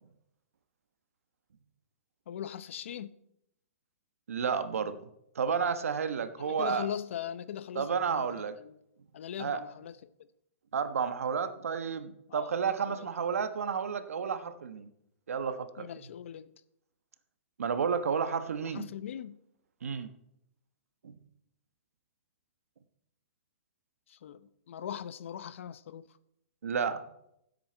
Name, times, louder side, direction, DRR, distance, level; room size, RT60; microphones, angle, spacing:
voice 1, 2.3-3.1 6.4-8.3 8.6-8.8 9.1-10.1 12.3-12.5 12.9-13.1 15.8-16.5 18.6-19.4 24.1-26.1, left 9 dB, 65° left, 0.8 m, -40 dB
voice 2, 4.3-5.0 5.3-6.9 7.7-8.6 9.4-9.6 10.7-14.9 15.3-15.9 17.6-18.9 19.8-20.1 21.0-21.2 26.6-27.0, right 6 dB, 90° right, 1.2 m, -31 dB
16.0 x 8.0 x 4.5 m
hypercardioid pair, 160°, 7 cm